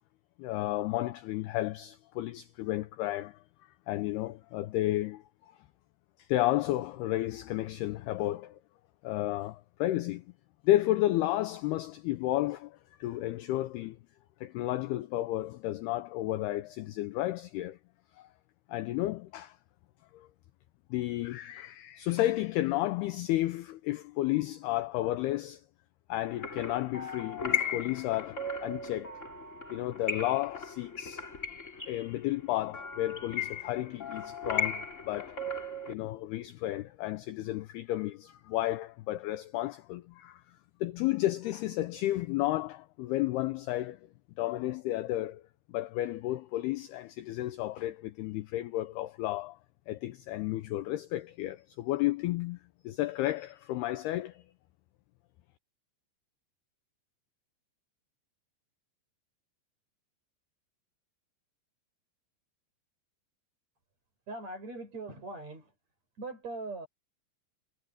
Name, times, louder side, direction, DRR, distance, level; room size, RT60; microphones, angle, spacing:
voice 1, 0.4-3.4 3.9-5.2 6.3-8.6 9.0-10.2 10.6-14.0 14.4-17.8 18.2-18.3 18.7-19.6 20.1-20.3 20.9-25.6 26.1-29.1 29.7-31.2 31.9-35.4 35.9-40.4 40.8-44.0 44.4-45.4 45.7-49.6 49.9-52.6 52.8-54.4, left 15 dB, 80° left, 2.3 m, -32 dB
sound 1, 26.2-35.9, left 4 dB, 20° left, 2.4 m, -37 dB
voice 2, 64.3-65.7 66.2-66.9, right 3 dB, 35° right, 8.4 m, -40 dB
omnidirectional pair, 5.4 m